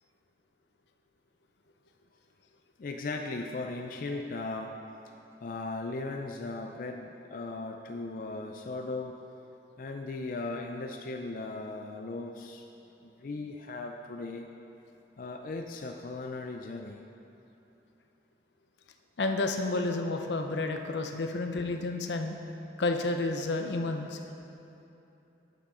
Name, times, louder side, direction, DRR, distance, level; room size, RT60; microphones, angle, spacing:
voice 1, 2.8-9.2 9.8-12.6 13.0-14.5 15.2-17.0, left 3 dB, 50° left, 3 dB, 0.4 m, -37 dB
voice 2, 19.2-22.4 22.8-24.2, left 2 dB, 85° left, 5 dB, 0.7 m, -30 dB
8.4 x 6.1 x 5.5 m, 3.0 s
head